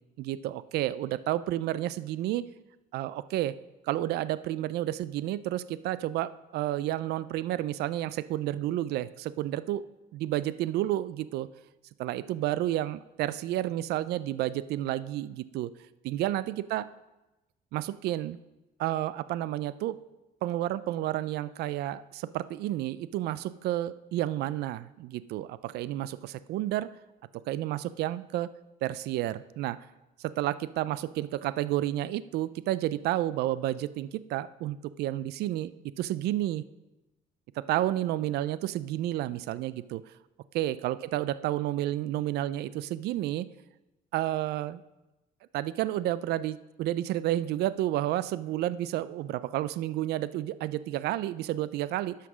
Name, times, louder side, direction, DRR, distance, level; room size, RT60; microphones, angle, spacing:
voice 1, 0.2-2.5 2.9-3.5 3.9-9.8 10.1-11.5 12.0-15.7 16.0-16.9 17.7-18.4 18.8-20.0 20.4-26.9 27.5-28.5 28.8-29.8 30.2-35.7 36.0-36.6 37.6-40.0 40.5-43.5 44.1-44.8 45.5-52.2, right 14 dB, 75° right, 16 dB, 0.4 m, -31 dB
11.0 x 5.8 x 6.1 m, 1.0 s
cardioid pair, 110°, 17 cm